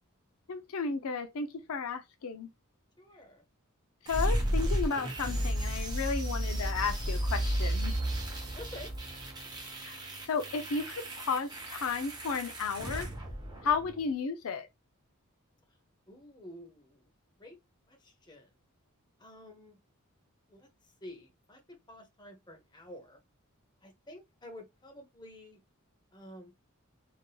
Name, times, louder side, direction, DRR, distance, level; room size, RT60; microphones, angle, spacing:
voice 1, 0.5-2.5 4.1-7.9 9.8-9.9 10.2-13.1 13.6-14.7, left 5 dB, 70° left, 0.5 m, -33 dB
voice 2, 3.0-3.4 8.6-8.9 16.1-17.1 17.4-17.6 17.9-18.5 19.2-19.8 20.5-20.7 21.0-23.2 23.8-25.6 26.1-26.5, left 1 dB, 20° left, 0.9 m, -50 dB
sound 1, 4.1-14.0, right 1 dB, 20° right, 0.9 m, -33 dB
3.7 x 2.7 x 2.3 m
head